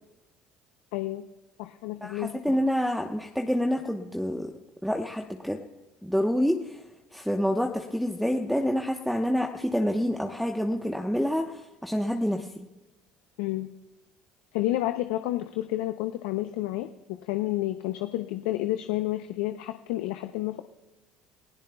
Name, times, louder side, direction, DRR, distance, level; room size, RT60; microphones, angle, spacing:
voice 1, 0.9-1.2 1.6-2.6 13.4-13.7 14.5-20.6, left 16 dB, 85° left, 8 dB, 0.7 m, -30 dB
voice 2, 2.0-4.5 4.8-5.6 6.0-6.8 7.1-12.7, equal, ahead, 2 dB, 1.1 m, -27 dB
28.0 x 16.0 x 2.3 m, 1.1 s
supercardioid pair, 90°, 3 cm